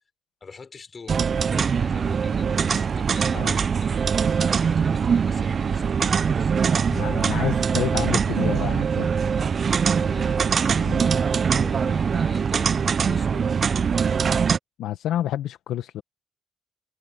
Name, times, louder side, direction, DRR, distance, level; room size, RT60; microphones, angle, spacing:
voice 1, 0.4-6.9 10.0-13.5, left 5 dB, 45° left, 5.1 m, -44 dB
sound 1, 1.1-14.6, right 6 dB, 55° right, 0.5 m, -22 dB
voice 2, 3.3-3.6 6.9-9.1 10.9-11.1 14.8-16.0, left 12 dB, 85° left, 1.4 m, -29 dB
supercardioid pair, 50°, 0 cm